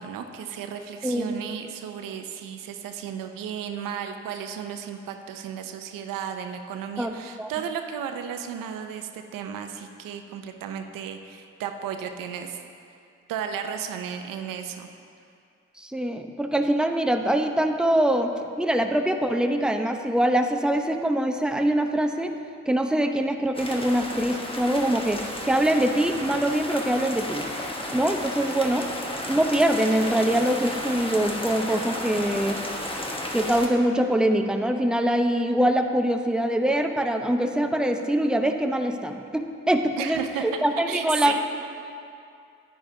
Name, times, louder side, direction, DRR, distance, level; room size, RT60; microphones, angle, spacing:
voice 1, 0.0-12.6 13.3-14.9 40.0-40.6 40.9-41.4, right 8 dB, 85° right, 6 dB, 0.6 m, -34 dB
voice 2, 1.0-1.4 7.0-7.1 7.4-7.5 15.8-22.3 22.7-27.5 27.9-28.9 29.3-32.6 33.3-41.4, right 1 dB, 5° right, 5 dB, 0.7 m, -24 dB
sound 1, 23.5-33.7, left 1 dB, 15° left, 1.4 m, -33 dB
10.5 x 9.8 x 2.7 m, 2.5 s
supercardioid pair, 45°, 32 cm